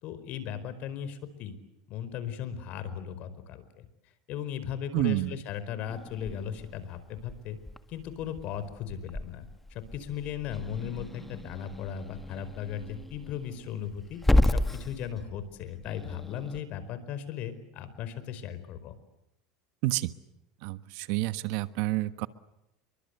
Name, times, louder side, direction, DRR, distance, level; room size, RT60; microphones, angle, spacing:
voice 1, 0.0-1.5 1.9-3.9 4.3-7.6 7.9-19.0, left 9 dB, 50° left, 13 dB, 4.6 m, -37 dB
voice 2, 4.9-5.4 19.8-20.1 20.6-22.3, right 17 dB, 65° right, 13 dB, 1.3 m, -29 dB
Growling / Hiss, 5.9-16.6, left 1 dB, 5° left, 1.8 m, -33 dB
29.0 x 23.5 x 8.2 m, 0.86 s
supercardioid pair, 125°, 3 cm